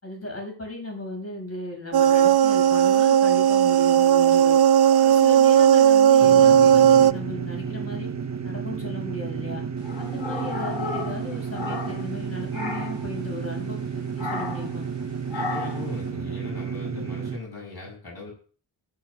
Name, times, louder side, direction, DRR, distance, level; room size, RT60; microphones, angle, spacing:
voice 1, 0.0-4.6 5.0-8.1 8.4-9.6 10.0-14.9, left 1 dB, 35° left, 1 dB, 6.3 m, -36 dB
sound 1, 1.9-7.1, right 9 dB, 60° right, 0.5 m, -16 dB
sound 2, 6.2-17.4, right 6 dB, 35° right, 0.9 m, -32 dB
sound 3, 9.8-12.2 12.5-13.1 14.2-14.7 15.3-15.9, left 3 dB, 85° left, 3.8 m, -33 dB
voice 2, 15.3-18.3, left 2 dB, 55° left, -2 dB, 7.4 m, -38 dB
15.0 x 13.0 x 2.4 m, 0.41 s
wide cardioid pair, 80°, 45 cm